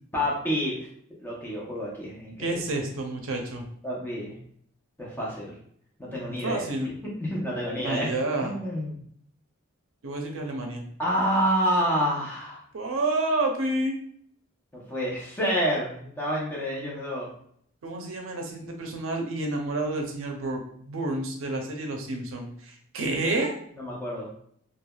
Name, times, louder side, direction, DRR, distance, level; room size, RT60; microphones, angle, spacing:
voice 1, 0.1-0.9 1.2-2.6 3.8-4.3 5.0-5.5 6.0-6.6 7.0-8.1 8.4-8.9 11.0-12.6 14.7-17.3 23.8-24.3, equal, 10° left, -5 dB, 0.7 m, -28 dB
voice 2, 2.4-3.7 6.4-6.9 7.8-8.5 10.0-10.9 12.7-14.0 17.8-23.5, right 2 dB, 75° right, 2 dB, 0.5 m, -29 dB
3.1 x 2.2 x 2.3 m, 0.65 s
head